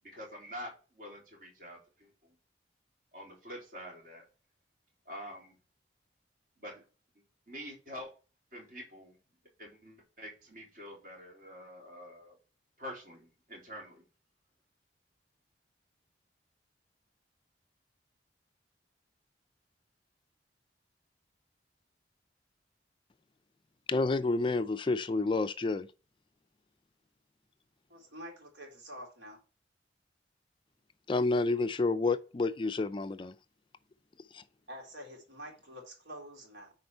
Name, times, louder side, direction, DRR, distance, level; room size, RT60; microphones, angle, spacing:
voice 1, 0.0-2.1 3.1-4.2 5.0-5.6 6.6-6.8 7.5-8.1 8.5-9.2 9.6-12.4 12.8-14.0, equal, 50° right, 3.5 m, -46 dB
voice 2, 23.9-25.9 31.1-33.3 34.3-34.4, left 3 dB, 25° left, 0.3 m, -29 dB
voice 3, 27.9-29.4 34.7-36.7, equal, 75° right, 3.3 m, -47 dB
9.7 x 4.4 x 4.6 m
head